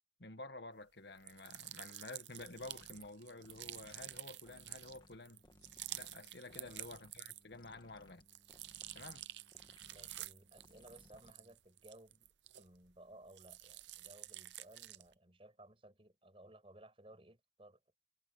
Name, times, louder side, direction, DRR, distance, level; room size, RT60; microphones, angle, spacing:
voice 1, 0.2-5.4 5.9-8.2 8.9-9.2, left 2 dB, 70° left, 1.6 m, -51 dB
sound 1, 1.2-7.7 8.0-12.9 13.3-15.1, right 15 dB, 85° right, 0.7 m, -50 dB
sound 2, 2.4-11.7, left 1 dB, 25° left, 1.7 m, -64 dB
voice 2, 6.5-6.9 9.9-12.3 12.6-18.0, right 1 dB, 30° right, 6.0 m, -59 dB
head